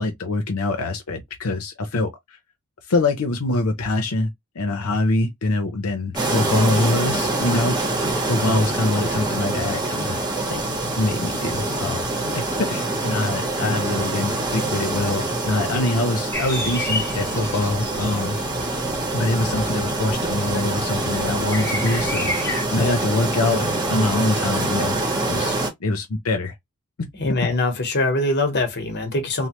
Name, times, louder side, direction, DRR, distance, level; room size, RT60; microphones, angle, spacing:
voice 1, 0.0-2.1 2.9-4.3 4.6-8.0 8.3-10.2 10.5-10.6 11.0-12.0 12.6-18.4 19.1-25.0 25.3-25.5 25.8-26.5 27.0-27.1, left 2 dB, 85° left, 0.6 m, -24 dB
sound 1, 6.1-25.7, right 2 dB, 20° right, 0.9 m, -25 dB
sound 2, 16.3-22.7, left 2 dB, 15° left, 0.9 m, -32 dB
voice 2, 27.1-29.5, left 2 dB, 50° left, 1.0 m, -23 dB
3.1 x 2.0 x 2.9 m
head